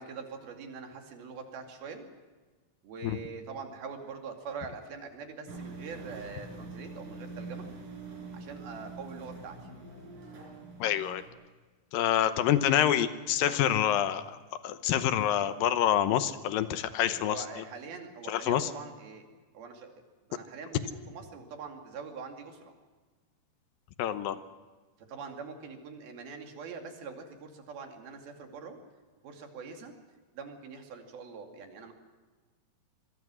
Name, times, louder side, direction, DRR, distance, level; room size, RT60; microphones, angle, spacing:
voice 1, 0.0-2.1 2.8-7.7 8.3-9.6 17.2-19.2 19.5-19.9 20.3-22.7 25.1-28.8 29.2-29.9 30.3-31.9, right 5 dB, 80° right, 4 dB, 4.4 m, -43 dB
sound 1, 5.5-11.3, right 3 dB, 65° right, 6.3 m, -44 dB
voice 2, 10.8-11.2 11.9-14.4 14.6-17.4 18.3-18.7 24.0-24.4, left 10 dB, 75° left, 11 dB, 2.6 m, -27 dB
25.0 x 22.5 x 6.2 m, 1.3 s
omnidirectional pair, 4.3 m